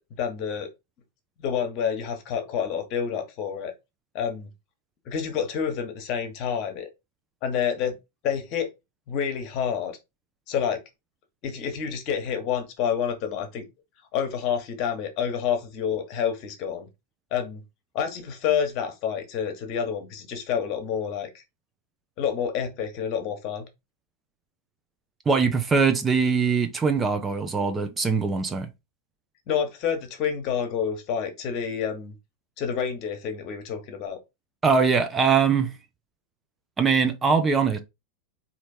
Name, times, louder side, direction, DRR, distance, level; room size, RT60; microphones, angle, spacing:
voice 1, 0.1-0.7 1.4-3.7 4.1-4.5 5.1-6.9 7.4-8.0 8.2-8.7 9.1-10.0 10.5-10.8 11.4-13.6 14.1-16.9 17.3-17.6 17.9-21.4 22.2-23.6 29.5-32.1 32.6-34.2, left 7 dB, 40° left, 1.2 m, -28 dB
voice 2, 25.3-28.7 34.6-35.7 36.8-37.8, right 5 dB, 15° right, 0.6 m, -22 dB
4.3 x 2.8 x 4.2 m
figure-of-eight pair, 90°, 0 cm